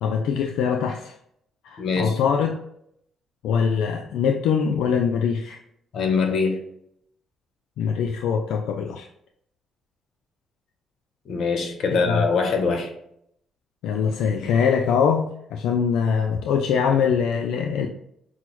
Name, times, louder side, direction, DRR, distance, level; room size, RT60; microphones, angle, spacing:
voice 1, 0.0-1.1 1.6-2.6 3.4-5.6 7.8-9.1 12.1-12.2 13.8-17.9, left 6 dB, 90° left, 3 dB, 0.3 m, -23 dB
voice 2, 1.8-2.2 5.9-6.6 11.3-12.9, left 4 dB, 65° left, 5 dB, 0.9 m, -23 dB
5.9 x 2.0 x 3.0 m, 0.72 s
cardioid pair, 90°, 0 cm